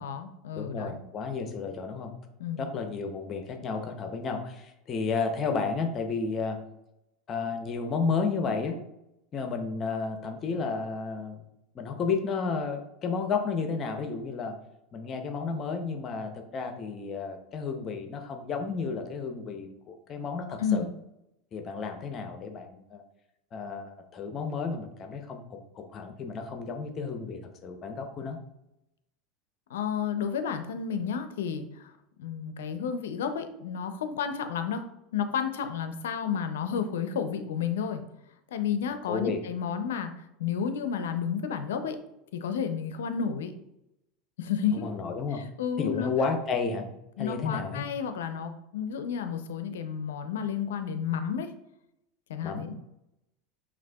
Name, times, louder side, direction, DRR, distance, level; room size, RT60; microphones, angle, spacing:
voice 1, 0.0-1.0 2.4-2.6 20.6-20.9 29.7-31.9 32.2-34.8 35.1-38.0 38.5-42.0 42.3-43.5 44.4-44.9 45.3-46.1 47.2-51.5 52.3-52.8, left 7 dB, 85° left, 9 dB, 0.4 m, -31 dB
voice 2, 0.5-2.1 2.6-6.6 7.3-8.8 9.3-11.4 11.7-14.5 14.9-20.9 21.5-23.0 23.5-28.4 39.0-39.4 44.7-45.4 45.8-46.9 47.2-47.8 52.4-52.7, left 5 dB, 40° left, 5 dB, 0.6 m, -32 dB
5.8 x 2.5 x 2.3 m, 0.85 s
hypercardioid pair, 95°, 0 cm